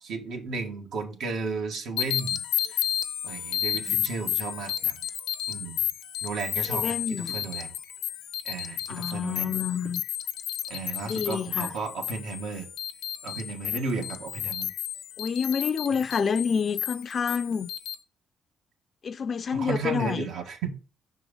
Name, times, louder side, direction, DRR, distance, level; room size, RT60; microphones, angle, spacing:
voice 1, 0.0-2.8 3.2-5.1 5.5-5.9 6.2-7.7 8.4-9.6 10.7-12.7 13.2-14.7 19.5-20.7, right 4 dB, 80° right, 1.6 m, -34 dB
sound 1, 2.0-17.9, left 12 dB, 90° left, 0.7 m, -32 dB
voice 2, 6.7-7.3 8.9-10.0 11.1-11.7 15.2-17.7 19.0-20.3, left 6 dB, 45° left, 0.4 m, -28 dB
6.1 x 4.6 x 5.1 m
cardioid pair, 90°, 0 cm